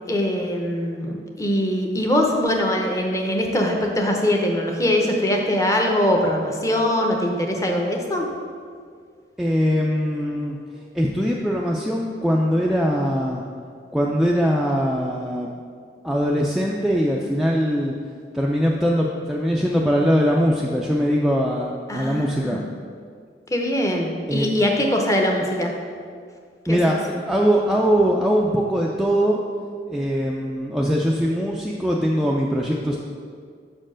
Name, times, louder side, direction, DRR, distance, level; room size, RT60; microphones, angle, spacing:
voice 1, 0.1-8.3 21.9-22.6 23.5-25.7 26.7-27.0, left 1 dB, 20° left, 1 dB, 0.7 m, -22 dB
voice 2, 9.4-10.6 10.9-13.4 13.9-15.5 16.0-17.9 18.3-22.6 24.3-24.5 26.7-29.4 29.9-33.0, equal, ahead, -3 dB, 0.3 m, -21 dB
5.7 x 4.4 x 6.2 m, 2.1 s
head